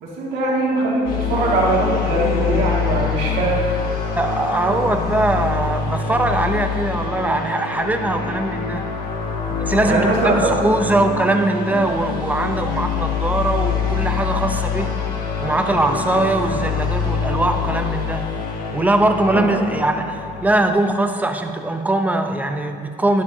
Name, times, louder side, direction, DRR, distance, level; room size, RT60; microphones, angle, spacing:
voice 1, 0.0-3.6 9.8-10.6 19.2-19.6, right 2 dB, 75° right, -5 dB, 2.3 m, -21 dB
sound 1, 1.0-20.5, left 6 dB, 60° left, 1.8 m, -25 dB
voice 2, 4.2-8.8 9.5-14.9 15.4-18.3 18.7-23.2, right 2 dB, 10° right, 6 dB, 0.8 m, -21 dB
12.0 x 10.5 x 2.8 m, 2.2 s
cardioid pair, 110°, 17 cm